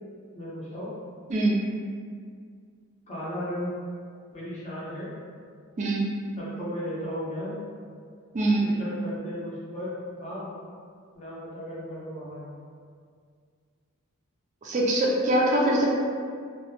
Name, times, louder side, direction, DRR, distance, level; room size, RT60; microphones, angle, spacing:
voice 1, 0.3-0.9 3.1-3.7 4.3-5.1 6.4-7.6 8.6-9.9 10.2-10.5 11.1-12.5, equal, 30° left, -9 dB, 0.5 m, -35 dB
voice 2, 1.3-1.6 5.8-6.1 8.3-8.6 14.6-15.9, right 1 dB, 35° right, -3 dB, 0.3 m, -23 dB
2.1 x 2.0 x 2.9 m, 2.1 s
head